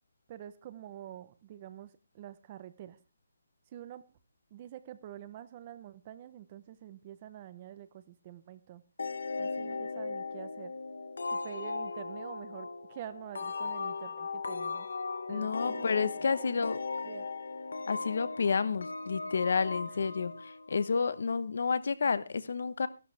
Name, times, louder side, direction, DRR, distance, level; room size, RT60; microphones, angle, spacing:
voice 1, 0.3-1.9 2.1-3.0 3.7-4.0 4.5-8.8 9.4-10.7 11.3-14.9 15.3-17.3, right 11 dB, 25° right, 13 dB, 0.8 m, -47 dB
sound 1, 9.0-21.4, left 4 dB, 80° left, 1.6 m, -38 dB
voice 2, 15.3-16.8 17.9-22.9, left 5 dB, 60° left, 15 dB, 1.1 m, -30 dB
15.0 x 12.0 x 3.4 m, 0.32 s
hypercardioid pair, 170°, 0 cm